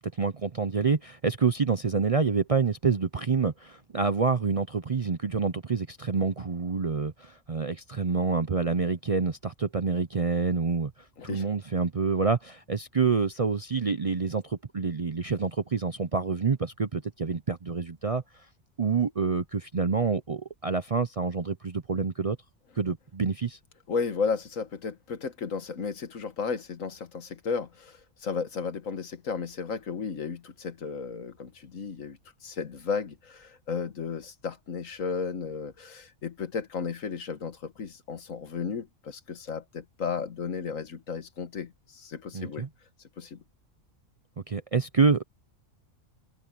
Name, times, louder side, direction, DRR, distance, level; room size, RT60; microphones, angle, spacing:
voice 1, 0.0-10.9 11.2-18.2 18.8-22.4 22.8-23.6 42.3-42.7 44.5-45.2, right 5 dB, 40° right, 0.5 m, -27 dB
voice 2, 23.9-42.6 43.2-43.4, left 5 dB, 80° left, 1.8 m, -34 dB
omnidirectional pair, 1.4 m